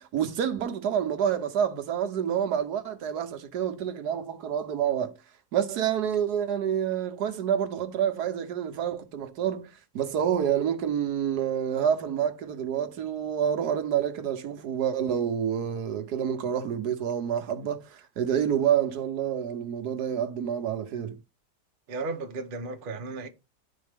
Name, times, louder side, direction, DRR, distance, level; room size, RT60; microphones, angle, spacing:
voice 1, 0.0-5.2 5.5-21.2, right 9 dB, 80° right, 1.4 m, -28 dB
voice 2, 21.9-23.3, right 3 dB, 40° right, 0.9 m, -34 dB
11.0 x 4.3 x 3.4 m
omnidirectional pair, 1.7 m